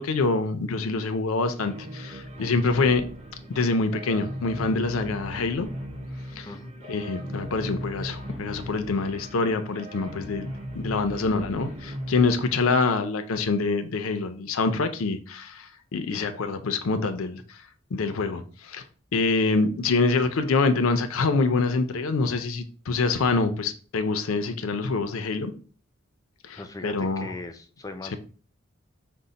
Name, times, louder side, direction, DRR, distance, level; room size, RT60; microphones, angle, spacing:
voice 1, 0.0-3.1 3.5-5.7 6.4-6.5 6.9-17.6 17.9-18.8 19.1-25.5 26.4-27.3, left 3 dB, 85° left, 0.5 m, -25 dB
sound 1, 1.6-12.8, equal, 30° right, 0.7 m, -38 dB
voice 2, 26.6-28.2, left 2 dB, 15° left, 0.4 m, -39 dB
5.2 x 2.1 x 3.9 m
head